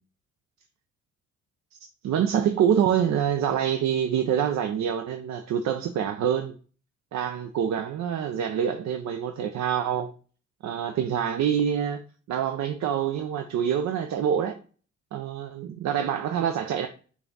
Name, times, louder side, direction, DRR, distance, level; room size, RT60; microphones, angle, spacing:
voice 1, 2.0-6.5 7.1-10.1 10.6-12.0 12.3-14.6 15.1-16.9, right 8 dB, 65° right, 0.5 m, -26 dB
5.6 x 2.4 x 3.9 m
cardioid pair, 90°, 30 cm